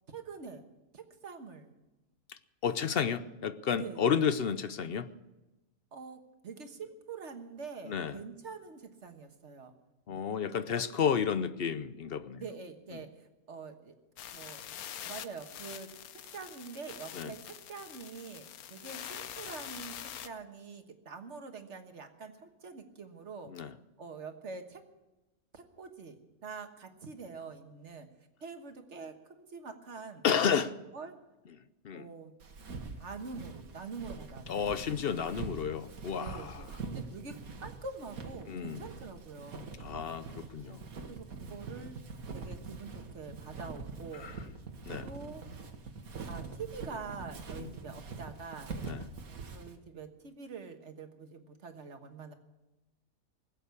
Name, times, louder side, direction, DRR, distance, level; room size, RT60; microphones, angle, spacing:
voice 1, 0.1-0.7 0.9-1.7 3.7-4.2 5.9-9.7 10.7-10.9 12.3-13.1 13.5-13.9 14.3-14.7 15.0-15.9 16.3-23.7 24.0-24.8 25.5-28.1 28.4-30.2 30.9-31.2 31.9-32.3 33.0-34.7 36.1-39.6 40.6-40.8 41.1-42.0 42.3-44.3 45.0-45.4 46.3-48.7 49.5-52.3, right 5 dB, 55° right, 6 dB, 1.6 m, -45 dB
voice 2, 2.6-5.1 7.9-8.2 10.1-12.4 17.1-17.3 23.5-23.7 30.2-30.7 31.8-32.1 34.5-36.6 38.5-38.8 39.8-40.9 44.2-44.3 44.9-45.1 47.6-47.7 48.8-49.0, left 7 dB, 55° left, 13 dB, 0.7 m, -31 dB
sound 1, 14.2-20.3, left 10 dB, 90° left, 1.2 m, -45 dB
Walk footsteps, 32.4-49.7, right 4 dB, 80° right, 1.8 m, -44 dB
19.5 x 8.2 x 8.2 m, 1.0 s
omnidirectional pair, 1.5 m